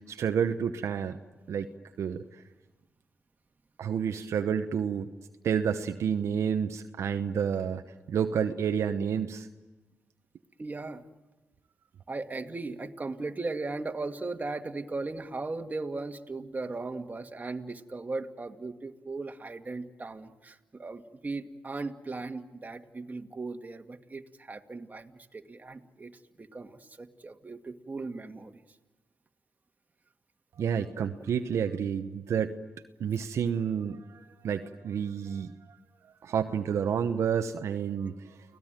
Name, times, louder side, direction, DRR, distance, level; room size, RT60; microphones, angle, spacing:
voice 1, 0.1-1.2 1.5-1.7 2.0-2.2 3.8-5.1 5.4-7.8 8.1-9.5 30.5-32.5 33.0-35.8 36.2-38.1, right 7 dB, 70° right, 7 dB, 1.1 m, -29 dB
voice 2, 10.6-11.0 12.1-26.1 26.4-28.6, right 3 dB, 35° right, 5 dB, 2.1 m, -37 dB
30.0 x 18.5 x 9.2 m, 1.1 s
supercardioid pair, 50°, 5 cm